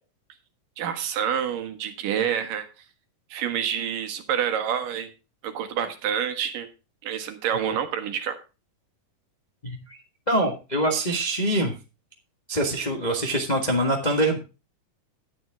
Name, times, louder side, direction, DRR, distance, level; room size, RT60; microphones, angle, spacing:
voice 1, 0.8-2.7 3.3-5.1 5.4-6.7 7.0-8.4, right 8 dB, 85° right, 7 dB, 3.1 m, -27 dB
voice 2, 9.6-10.0 10.3-11.7 12.5-14.4, right 1 dB, 35° left, 2 dB, 0.6 m, -24 dB
11.5 x 9.8 x 3.6 m, 0.30 s
omnidirectional pair, 3.7 m